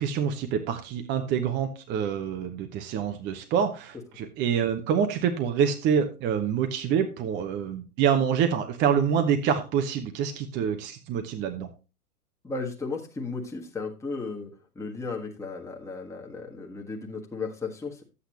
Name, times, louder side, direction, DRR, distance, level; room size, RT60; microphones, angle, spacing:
voice 1, 0.0-11.7, right 7 dB, 25° right, 6 dB, 0.9 m, -26 dB
voice 2, 12.4-18.0, left 4 dB, 5° left, 0 dB, 1.5 m, -35 dB
11.5 x 8.4 x 3.1 m, 0.31 s
figure-of-eight pair, 110°, 45 cm